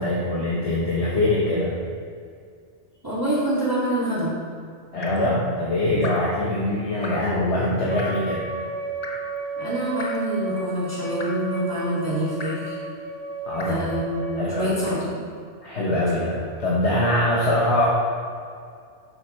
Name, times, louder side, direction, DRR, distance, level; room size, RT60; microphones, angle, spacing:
voice 1, 0.0-1.8 4.9-8.4 13.4-13.8 14.4-14.7 15.6-17.9, left 1 dB, 70° left, -6 dB, 1.6 m, -23 dB
voice 2, 3.0-4.3 9.6-12.8 13.6-15.1, right 1 dB, 20° right, -11 dB, 2.6 m, -26 dB
Drip, 5.0-5.4 6.0-6.4 7.0-7.4 8.0-8.3 9.0-9.4 10.0-10.4 11.2-11.5 12.4-12.7 13.6-13.9 14.8-15.2 16.1-16.3, left 3 dB, 40° left, 0.8 m, -37 dB
Wind instrument woodwind instrument, 7.9-14.4, right 4 dB, 65° right, 2.3 m, -33 dB
11.0 x 7.9 x 3.3 m, 2.2 s
omnidirectional pair, 1.2 m